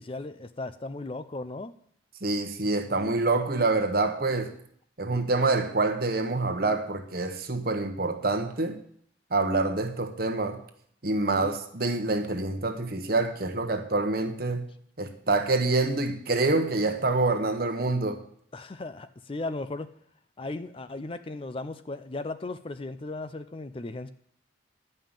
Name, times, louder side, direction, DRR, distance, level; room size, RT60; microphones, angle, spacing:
voice 1, 0.0-1.7 11.3-11.5 18.5-19.9 20.4-24.1, left 2 dB, 30° left, 0.4 m, -36 dB
voice 2, 2.2-4.5 5.0-8.8 9.3-10.6 11.0-14.7 15.0-18.2, right 3 dB, 50° right, 1.1 m, -26 dB
11.0 x 5.5 x 8.8 m
head